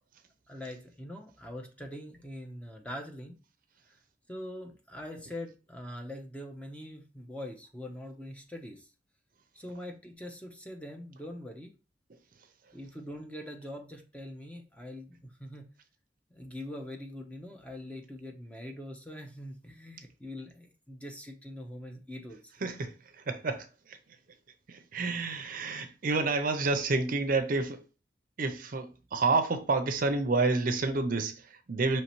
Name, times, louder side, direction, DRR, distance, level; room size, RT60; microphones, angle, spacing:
voice 1, 0.5-3.4 4.3-8.9 9.5-11.7 12.7-15.6 16.3-22.5, left 1 dB, 5° left, 0.6 m, -43 dB
voice 2, 22.6-22.9 23.3-23.7 24.7-27.8 28.4-32.0, right 3 dB, 50° right, 0.5 m, -29 dB
5.5 x 3.1 x 3.0 m
head